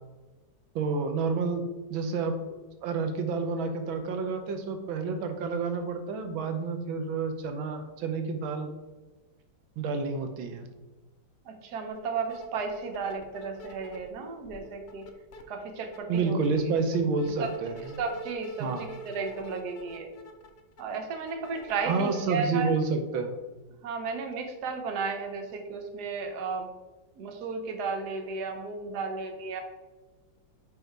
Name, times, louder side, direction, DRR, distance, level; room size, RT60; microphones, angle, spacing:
voice 1, 0.7-8.7 9.8-10.7 16.1-18.0 18.6-18.9 21.8-23.4, right 4 dB, 90° right, 6 dB, 1.6 m, -29 dB
voice 2, 11.5-15.1 15.5-16.4 17.4-17.5 18.0-20.1 20.8-22.7 23.8-26.7 27.2-29.6, right 4 dB, 60° right, 4 dB, 1.4 m, -34 dB
sound 1, 11.9-12.0 12.2-14.1 14.4-15.4 15.8-22.2, right 1 dB, 70° left, 0.6 m, -46 dB
5.5 x 5.5 x 4.5 m, 1.2 s
omnidirectional pair, 2.1 m